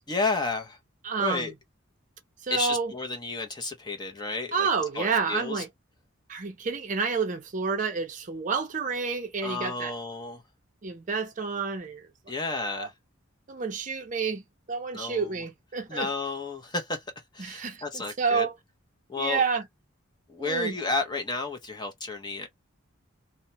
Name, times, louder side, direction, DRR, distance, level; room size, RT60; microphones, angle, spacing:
voice 1, 0.1-0.8 1.2-1.5 2.5-4.7 4.9-5.6 9.4-10.4 12.3-12.9 14.9-15.3 15.9-17.0 17.3-18.5 19.1-19.4 20.3-22.5, left 3 dB, 20° left, 0.6 m, -31 dB
voice 2, 1.0-1.5 2.4-2.9 4.5-5.7 6.3-9.9 10.8-12.1 12.5-12.9 13.5-14.4 14.7-16.1 17.4-18.5 19.2-19.6 20.4-20.7, right 5 dB, 40° right, 0.5 m, -29 dB
2.8 x 2.1 x 2.8 m
head